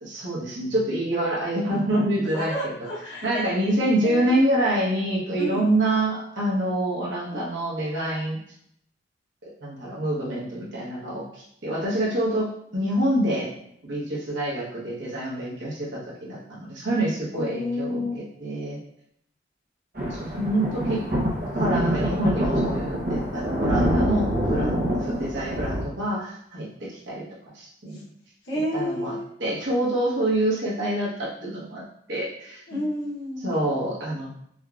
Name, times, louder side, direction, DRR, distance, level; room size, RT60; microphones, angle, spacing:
voice 1, 0.0-2.7 3.2-8.4 9.6-13.5 13.8-18.8 20.1-21.0 21.5-24.8 25.1-27.2 27.5-28.1 28.7-32.8 33.4-34.3, right 1 dB, 80° right, -5 dB, 1.2 m, -26 dB
voice 2, 2.3-3.4 4.0-4.5 5.4-5.7 7.2-7.4 17.3-18.1 24.6-25.1 27.9-28.0 28.4-29.4 32.7-33.6, left 1 dB, 90° left, -7 dB, 1.1 m, -31 dB
sound 1, 19.9-25.8, equal, 50° right, 0.8 m, -25 dB
5.0 x 2.4 x 2.5 m, 0.71 s
head